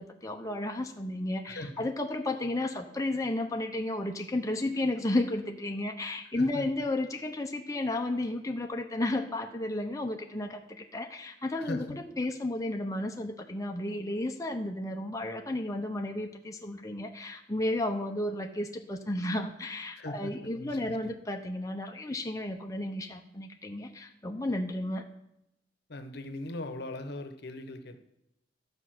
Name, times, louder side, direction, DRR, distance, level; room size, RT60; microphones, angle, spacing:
voice 1, 0.0-25.0, left 1 dB, 20° left, 3 dB, 0.8 m, -33 dB
voice 2, 1.5-1.8 6.4-6.7 11.6-12.0 20.0-21.0 25.9-28.0, left 1 dB, 60° left, 8 dB, 1.0 m, -40 dB
12.5 x 5.3 x 7.7 m, 0.85 s
head